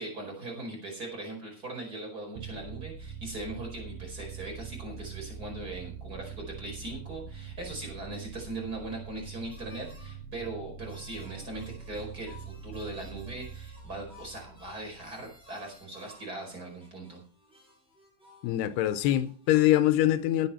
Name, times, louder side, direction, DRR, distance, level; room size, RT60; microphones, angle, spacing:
voice 1, 0.0-17.2, right 2 dB, 20° right, 5.1 m, -40 dB
sound 1, 2.4-15.8, right 6 dB, 85° right, 3.0 m, -44 dB
sound 2, 9.5-10.1 10.9-19.8, left 1 dB, ahead, 5.6 m, -57 dB
voice 2, 18.4-20.5, left 13 dB, 85° left, 2.9 m, -24 dB
17.5 x 7.8 x 4.3 m
omnidirectional pair, 4.6 m